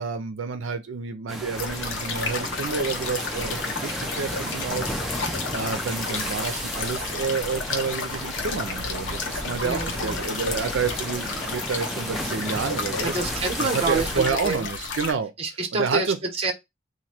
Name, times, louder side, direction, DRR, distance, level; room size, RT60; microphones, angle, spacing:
voice 1, 0.0-5.3 5.5-13.1 13.6-15.3 15.7-16.2, right 5 dB, 85° right, 0.5 m, -29 dB
sound 1, 1.3-14.3, equal, ahead, 0.5 m, -34 dB
sound 2, 1.5-15.1, left 4 dB, 80° left, 0.8 m, -32 dB
voice 2, 9.6-10.2 13.0-14.7 15.4-16.5, right 3 dB, 30° right, 0.8 m, -28 dB
3.0 x 2.6 x 4.2 m
head